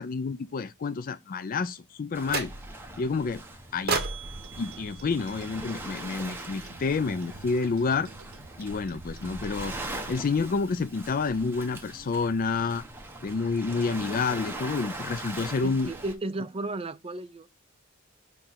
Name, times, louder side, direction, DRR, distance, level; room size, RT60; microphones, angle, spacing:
voice 1, 0.0-2.5 3.0-3.4 3.7-4.0 4.6-8.1 8.6-9.7 10.1-12.8 13.2-15.9, left 4 dB, 40° left, 0.4 m, -29 dB
Waves surf, 2.1-16.1, right 2 dB, 10° right, 1.1 m, -41 dB
sound 1, 2.3-2.9 3.9-6.1, right 5 dB, 50° right, 1.0 m, -34 dB
sound 2, 4.2-9.8, right 3 dB, 85° right, 0.7 m, -49 dB
voice 2, 15.6-17.5, right 2 dB, 25° right, 0.5 m, -34 dB
6.7 x 3.2 x 5.7 m
head